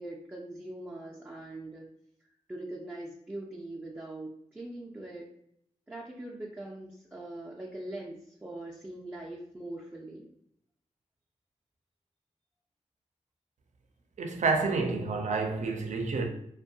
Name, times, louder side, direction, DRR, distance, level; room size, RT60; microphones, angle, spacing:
voice 1, 0.0-1.9 2.5-5.3 5.9-10.3, right 1 dB, 15° right, 0.4 m, -42 dB
voice 2, 14.2-16.3, right 3 dB, 70° right, 0.4 m, -29 dB
2.6 x 2.2 x 2.7 m
wide cardioid pair, 85°, 13 cm